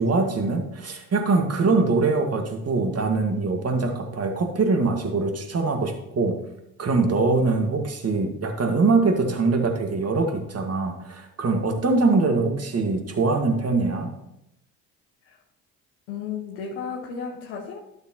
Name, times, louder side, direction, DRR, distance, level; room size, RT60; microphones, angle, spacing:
voice 1, 0.0-6.4 6.8-14.1, right 3 dB, 35° right, 4 dB, 1.9 m, -23 dB
voice 2, 16.1-17.8, left 6 dB, 80° left, -1 dB, 1.1 m, -33 dB
11.5 x 6.8 x 3.0 m, 0.84 s
hypercardioid pair, 55°, 43 cm